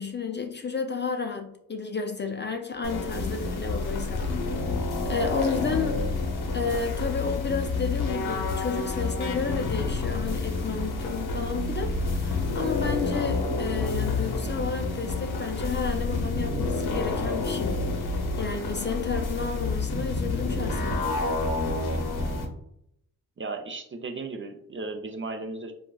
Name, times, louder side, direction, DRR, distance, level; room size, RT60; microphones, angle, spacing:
voice 1, 0.0-4.2 5.0-6.0 6.5-17.8 18.4-21.0, left 5 dB, 30° left, 5 dB, 0.4 m, -31 dB
sound 1, 2.8-22.5, left 3 dB, 75° left, 0.8 m, -29 dB
sound 2, 11.4-16.5, right 1 dB, 90° right, 0.9 m, -45 dB
voice 2, 23.4-25.7, right 3 dB, 30° right, 4 dB, 0.5 m, -35 dB
3.6 x 2.3 x 2.3 m, 0.74 s
supercardioid pair, 50°, 39 cm